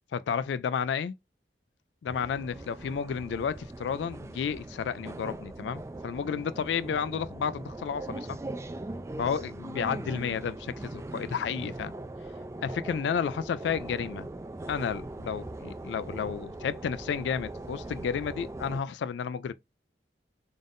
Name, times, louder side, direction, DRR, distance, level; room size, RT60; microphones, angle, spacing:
voice 1, 0.1-1.1 2.0-8.4 9.2-11.9 12.6-14.3 14.7-19.5, left 7 dB, 80° left, 0.3 m, -32 dB
sound 1, 2.1-18.8, right 2 dB, 15° right, 0.3 m, -40 dB
3.7 x 2.5 x 3.5 m
head